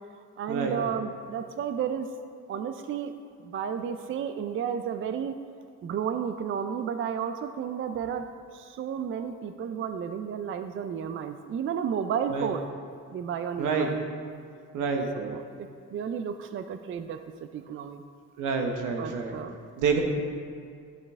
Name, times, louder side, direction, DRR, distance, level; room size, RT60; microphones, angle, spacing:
voice 1, 0.4-2.1 2.5-3.1 3.4-5.3 5.8-8.3 8.5-12.6 13.1-14.0 15.2-17.2 17.5-18.0 19.0-19.6, right 8 dB, 45° right, 8 dB, 0.4 m, -32 dB
voice 2, 13.6-13.9 14.7-15.1 18.4-19.4 19.8-20.0, right 5 dB, 90° right, 3 dB, 1.1 m, -27 dB
11.0 x 5.3 x 3.6 m, 2.2 s
cardioid pair, 90°, 30 cm